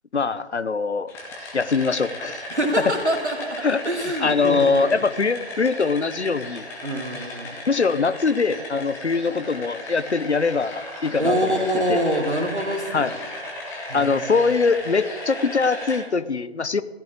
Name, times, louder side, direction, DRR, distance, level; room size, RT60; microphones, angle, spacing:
voice 1, 0.1-1.1 1.5-2.4 3.6-3.8 4.2-6.6 7.7-12.0 12.9-13.1 13.9-16.8, left 4 dB, 80° left, 15 dB, 0.9 m, -22 dB
sound 1, 1.1-16.0, left 1 dB, 5° left, 1.6 m, -36 dB
voice 2, 2.5-5.1 6.8-7.6 11.2-13.1 13.9-14.3, right 1 dB, 90° right, 2 dB, 3.0 m, -25 dB
15.5 x 6.3 x 8.5 m, 1.3 s
figure-of-eight pair, 150°, 33 cm